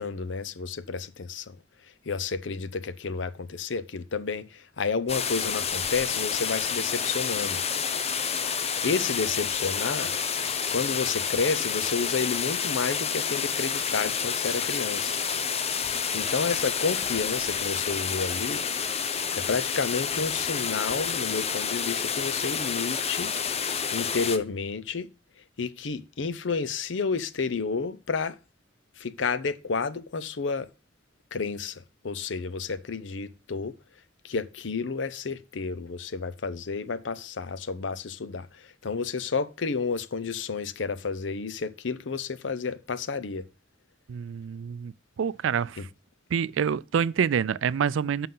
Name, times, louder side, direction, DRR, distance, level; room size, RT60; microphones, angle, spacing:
voice 1, 0.0-1.6 2.1-7.6 8.8-10.1 10.7-15.2 16.1-18.6 19.4-23.3 23.9-25.1 25.6-28.4 29.0-30.7 31.3-33.8 34.2-43.5 45.8-45.9, left 4 dB, 70° left, 0.7 m, -31 dB
sound 1, 5.1-24.4, left 7 dB, 35° left, 0.7 m, -29 dB
voice 2, 44.1-44.9 45.2-45.9 46.3-48.3, right 7 dB, 85° right, 0.4 m, -27 dB
7.7 x 5.6 x 5.5 m
head